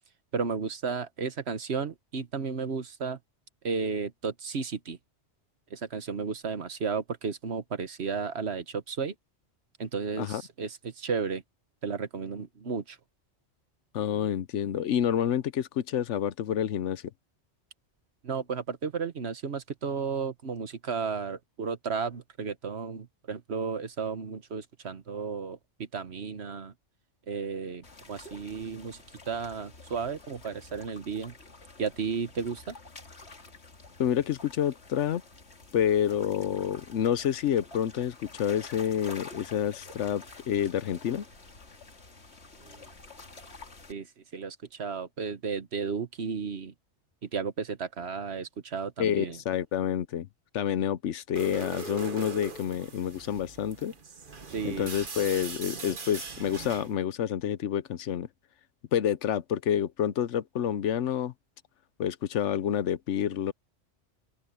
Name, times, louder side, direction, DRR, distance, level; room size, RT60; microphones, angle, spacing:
voice 1, 0.3-3.2 3.6-5.0 5.7-9.1 9.8-11.4 11.8-13.0 18.2-26.7 27.3-31.3 31.8-32.8 42.6-42.9 43.9-46.7 47.2-49.4 54.5-54.9, right 5 dB, 65° right, 1.5 m, -33 dB
voice 2, 13.9-17.0 34.0-35.2 35.7-41.2 49.0-50.3 50.5-53.9 54.6-58.3 58.9-61.3 62.0-63.5, left 9 dB, 85° left, 1.1 m, -28 dB
sound 1, 27.8-43.9, left 3 dB, 70° left, 2.5 m, -49 dB
sound 2, 51.4-56.9, right 3 dB, 45° right, 1.5 m, -40 dB
open air
omnidirectional pair, 1.2 m